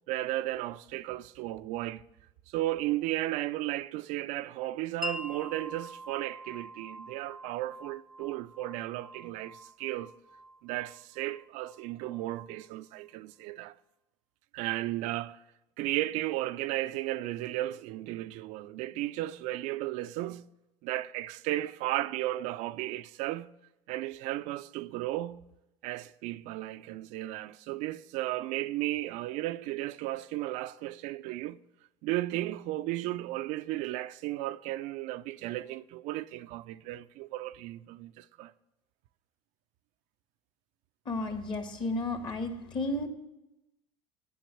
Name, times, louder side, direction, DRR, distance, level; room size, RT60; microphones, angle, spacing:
voice 1, 0.1-2.0 2.5-10.1 10.6-13.7 14.5-15.4 15.8-20.5 20.8-23.5 23.9-25.4 25.8-31.6 32.0-38.5, right 16 dB, 70° right, 0.4 m, -34 dB
Wind chime, 5.0-12.7, left 1 dB, ahead, 0.5 m, -45 dB
voice 2, 41.0-43.1, left 2 dB, 40° left, 1.7 m, -33 dB
9.2 x 6.2 x 8.2 m
supercardioid pair, 105°, 13 cm